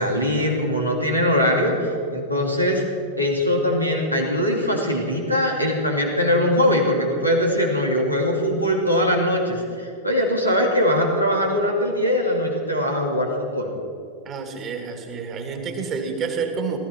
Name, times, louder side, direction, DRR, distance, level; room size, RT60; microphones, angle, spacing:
voice 1, 0.0-2.8 3.2-13.7, left 1 dB, 90° right, -1 dB, 2.7 m, -21 dB
voice 2, 14.2-16.8, right 5 dB, 30° right, 4 dB, 2.4 m, -29 dB
18.5 x 14.0 x 4.5 m, 2.4 s
figure-of-eight pair, 90°, 0 cm